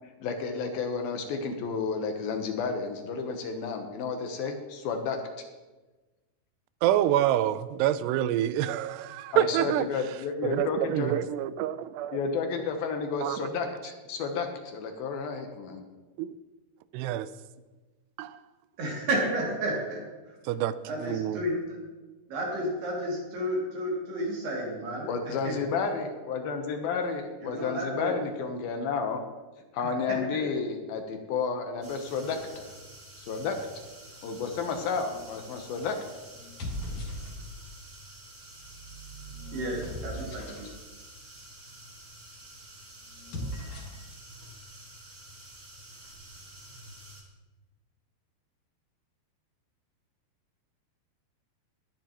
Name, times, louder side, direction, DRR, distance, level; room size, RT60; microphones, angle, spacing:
voice 1, 0.2-5.2 9.3-11.2 11.6-11.7 12.1-15.8 25.1-29.2 29.7-32.7 33.2-33.6 34.2-36.0, left 5 dB, 70° left, 2.6 m, -31 dB
voice 2, 6.8-9.9 10.4-12.2 12.6-12.7 13.2-13.4 16.2-16.3 16.9-17.3 18.2-18.3 20.5-20.8 21.0-21.4, right 12 dB, 85° right, 2.6 m, -27 dB
voice 3, 18.8-20.4 20.8-21.8 22.3-25.6 27.4-28.2 29.8-30.5 32.2-32.4 39.5-40.7, right 1 dB, 70° right, 4.6 m, -32 dB
sound 1, 31.8-47.2, right 1 dB, 45° right, 1.0 m, -49 dB
sound 2, 35.1-35.5 36.4-37.7 38.5-40.8 43.1-44.1, equal, 50° left, 2.6 m, -39 dB
20.0 x 10.5 x 3.0 m
omnidirectional pair, 4.7 m